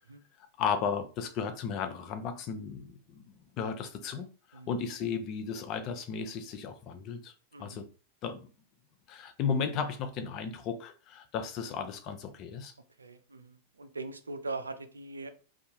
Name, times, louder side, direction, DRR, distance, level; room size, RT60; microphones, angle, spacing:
voice 1, 0.4-3.2 3.6-4.2 4.5-7.3 7.6-7.9 8.2-8.5 9.1-12.7, left 6 dB, 40° left, 0.5 m, -34 dB
voice 2, 7.5-7.8 13.0-15.3, right 3 dB, 90° right, 0.4 m, -41 dB
2.7 x 2.3 x 2.8 m
hypercardioid pair, 95°, 0 cm